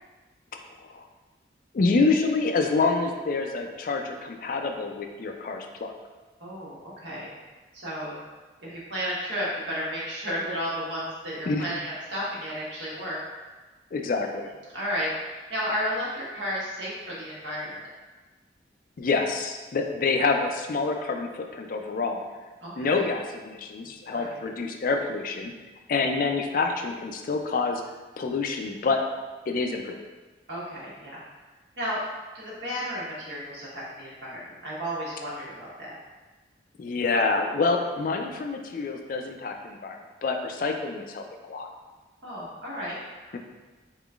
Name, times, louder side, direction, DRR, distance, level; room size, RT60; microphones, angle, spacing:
voice 1, 1.7-5.9 11.5-11.7 13.9-14.5 19.0-22.2 22.8-25.5 25.9-27.8 28.2-29.0 29.5-30.0 36.8-41.7 43.3-43.4, left 4 dB, 50° left, 4 dB, 0.3 m, -27 dB
voice 2, 6.4-7.3 7.7-8.2 8.6-13.2 14.7-17.7 22.6-23.0 24.1-24.3 30.5-31.2 31.8-32.0 32.3-36.0 42.2-43.4, equal, 80° right, -7 dB, 1.3 m, -33 dB
3.9 x 3.7 x 2.3 m, 1.3 s
head